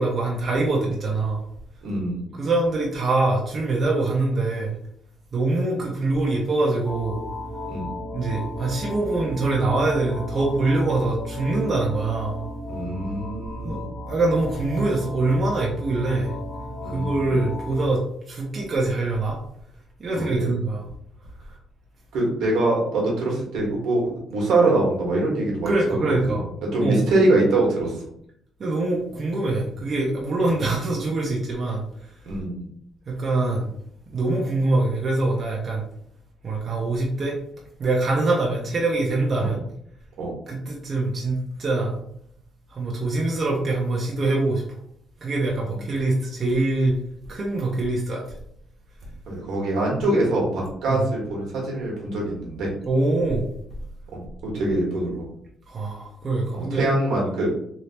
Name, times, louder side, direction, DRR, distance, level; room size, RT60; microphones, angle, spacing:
voice 1, 0.0-1.4 2.3-4.7 5.3-7.2 8.1-12.4 13.6-13.8 14.1-16.3 16.8-19.4 20.0-20.9 25.7-26.4 26.8-27.0 28.6-32.2 33.1-33.7 34.1-35.8 36.4-37.4 37.8-39.6 40.5-42.0 42.7-44.6 45.2-47.0 47.3-48.4 50.9-51.0 52.8-53.5 55.7-56.9, right 2 dB, 45° right, -3 dB, 0.7 m, -24 dB
voice 2, 1.8-2.2 7.7-7.9 12.7-13.9 16.8-17.3 20.1-20.5 22.1-25.7 26.1-26.4 26.7-27.9 32.2-32.7 39.4-39.5 40.2-40.3 49.3-52.7 54.1-55.3 56.5-57.5, right 2 dB, 80° right, -2 dB, 1.3 m, -24 dB
sound 1, 6.8-17.9, left 1 dB, 30° left, 0.9 m, -34 dB
3.2 x 2.7 x 2.8 m, 0.69 s
cardioid pair, 90°, 0 cm